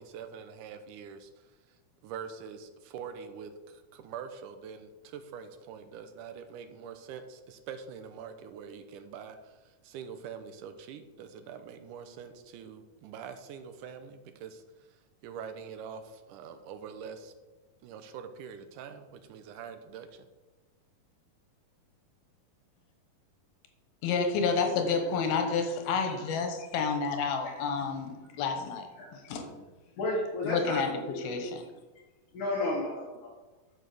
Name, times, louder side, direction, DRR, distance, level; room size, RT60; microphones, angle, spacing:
voice 1, 0.0-1.5 2.0-14.6 15.2-17.3 17.8-20.3, right 7 dB, 75° right, 8 dB, 2.1 m, -44 dB
voice 2, 24.0-28.9 29.1-29.4 30.4-30.9 31.2-31.6, left 5 dB, 85° left, 5 dB, 3.1 m, -29 dB
voice 3, 30.0-30.8 31.1-31.5 32.3-33.3, left 2 dB, 60° left, -4 dB, 2.9 m, -33 dB
9.7 x 6.3 x 6.8 m, 1.2 s
omnidirectional pair, 4.2 m